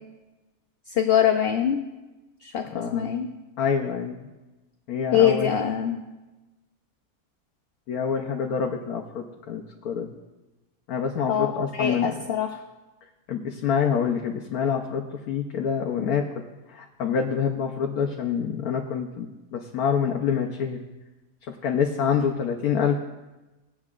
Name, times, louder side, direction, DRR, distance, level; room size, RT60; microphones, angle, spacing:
voice 1, 0.9-1.8 2.4-3.3 5.1-6.0 11.3-12.6, left 9 dB, 60° left, 5 dB, 0.7 m, -23 dB
voice 2, 2.6-3.2 3.6-4.3 4.9-5.5 7.9-10.1 10.9-12.1 13.3-16.2 16.7-19.3 19.5-20.8 21.5-23.0, left 7 dB, 85° left, 2 dB, 1.2 m, -26 dB
18.5 x 8.6 x 2.4 m, 1.1 s
omnidirectional pair, 1.5 m